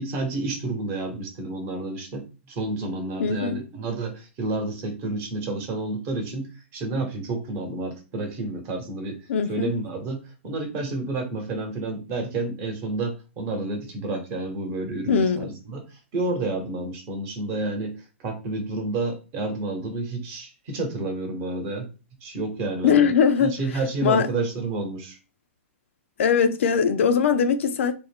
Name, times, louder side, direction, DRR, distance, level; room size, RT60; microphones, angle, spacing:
voice 1, 0.0-6.5 6.7-9.2 9.5-17.9 18.2-21.9 22.2-23.1 23.4-25.2, right 2 dB, 35° right, 0.9 m, -30 dB
voice 2, 3.2-3.6 9.3-9.8 15.1-15.5 22.8-23.6 24.0-24.3 26.2-27.9, left 6 dB, 70° left, 0.4 m, -21 dB
2.5 x 2.1 x 3.4 m
hypercardioid pair, 125°, 7 cm